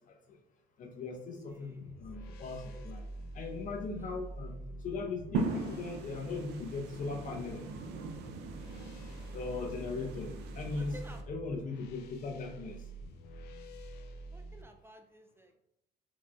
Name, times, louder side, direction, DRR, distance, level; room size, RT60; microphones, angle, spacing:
voice 1, 0.1-0.4 0.8-3.0 3.3-7.6 9.3-11.0 11.3-12.9, left 3 dB, 50° left, 3 dB, 0.9 m, -39 dB
voice 2, 1.5-2.0 2.7-2.8 4.0-4.2 10.8-11.2 14.3-15.5, equal, 15° right, 4 dB, 0.4 m, -53 dB
sound 1, 1.8-14.6, right 1 dB, 75° left, 0.6 m, -47 dB
sound 2, 5.3-11.2, right 3 dB, 80° right, 0.6 m, -40 dB
4.6 x 4.1 x 2.4 m, 0.81 s
cardioid pair, 110°, 17 cm